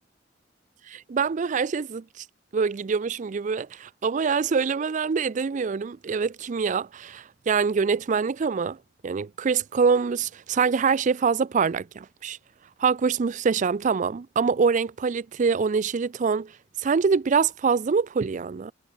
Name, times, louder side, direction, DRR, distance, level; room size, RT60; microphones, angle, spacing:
voice 1, 0.9-2.2 2.5-8.8 9.0-12.4 12.8-16.5 16.8-18.7, right 5 dB, 40° right, 0.4 m, -25 dB
head